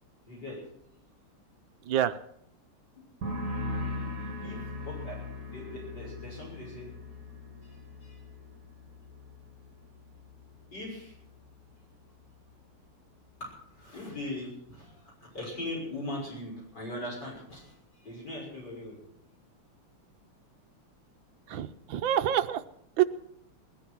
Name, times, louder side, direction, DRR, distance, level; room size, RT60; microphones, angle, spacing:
voice 1, 0.3-0.6 4.4-5.2 5.5-6.9 7.6-8.2 10.7-11.1 13.4-19.0, left 1 dB, 50° left, -3 dB, 6.9 m, -40 dB
voice 2, 1.8-2.2 21.5-22.6 23.0-23.1, right 11 dB, 70° right, 10 dB, 1.4 m, -26 dB
sound 1, 3.2-10.7 11.0-11.5, left 2 dB, 50° right, 2.4 m, -39 dB
19.5 x 11.5 x 6.1 m, 0.70 s
omnidirectional pair, 2.4 m